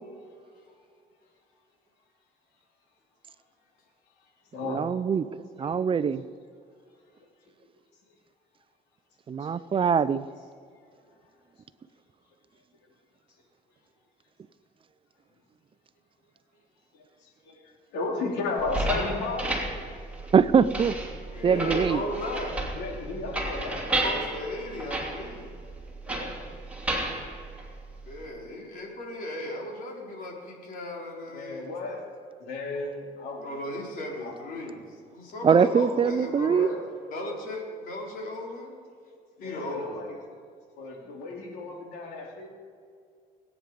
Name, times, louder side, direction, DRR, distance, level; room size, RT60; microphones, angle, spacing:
voice 1, 4.7-5.3 5.6-6.2 9.3-10.3 20.3-21.0 21.4-22.0 35.4-36.7, right 6 dB, 30° right, 15 dB, 0.5 m, -22 dB
voice 2, 17.9-19.5 22.7-23.9 26.1-26.4 31.3-32.0 32.4-33.5 34.2-34.3 35.5-35.8 36.5-36.9 39.4-40.1 40.8-42.5, left 3 dB, 90° left, -1 dB, 3.3 m, -34 dB
sound 1, 18.6-28.2, right 2 dB, 5° right, 2.9 m, -33 dB
voice 3, 21.1-22.5 24.0-25.5 28.1-31.7 33.4-36.8 37.1-38.8 39.4-40.0, left 1 dB, 60° left, -2 dB, 4.1 m, -36 dB
20.5 x 9.3 x 5.2 m, 2.2 s
cardioid pair, 110°, 17 cm